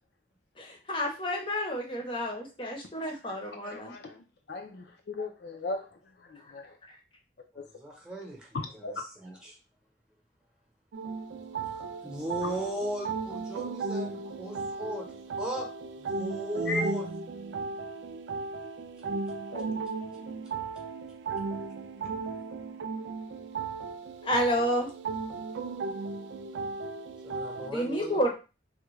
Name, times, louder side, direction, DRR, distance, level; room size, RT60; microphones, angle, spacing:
voice 1, 0.6-3.8 24.2-24.9 27.6-28.3, equal, 30° left, 1 dB, 0.7 m, -30 dB
voice 2, 4.5-5.9 6.2-6.8 7.6-7.7 8.5-9.0 12.4-12.6 16.7-16.8 19.5-19.8, left 3 dB, 65° left, 4 dB, 0.5 m, -36 dB
voice 3, 7.5-8.5 8.7-8.9 9.2-9.6 11.7-15.1 15.4-15.7 16.0-17.1 27.2-28.2, right 1 dB, 5° right, -1 dB, 0.9 m, -37 dB
sound 1, 10.9-27.7, right 4 dB, 80° right, 0.3 m, -36 dB
3.5 x 2.2 x 3.1 m, 0.31 s
head